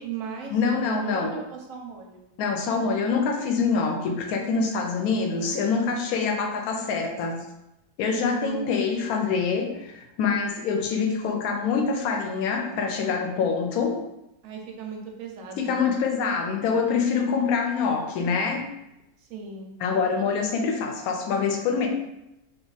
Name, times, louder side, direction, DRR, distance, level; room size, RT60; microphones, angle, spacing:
voice 1, 0.0-2.3 5.2-6.1 8.1-8.8 14.4-16.0 19.2-19.7, right 7 dB, 65° right, 1 dB, 0.8 m, -36 dB
voice 2, 0.5-1.3 2.4-7.4 8.0-14.0 15.6-18.6 19.8-21.9, left 5 dB, 70° left, 3 dB, 1.0 m, -25 dB
2.7 x 2.4 x 3.9 m, 0.91 s
omnidirectional pair, 1.7 m